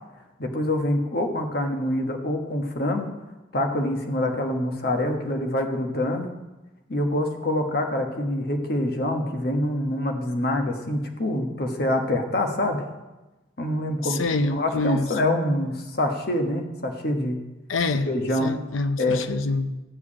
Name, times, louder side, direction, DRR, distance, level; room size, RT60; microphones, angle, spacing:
voice 1, 0.4-3.1 3.5-6.3 6.9-12.8 13.6-17.4 18.1-18.6 19.0-19.2, left 1 dB, 50° left, 3 dB, 1.4 m, -25 dB
voice 2, 14.0-15.1 17.7-18.1 18.4-19.8, left 3 dB, 85° left, 11 dB, 0.7 m, -26 dB
13.5 x 4.8 x 8.7 m, 1.1 s
head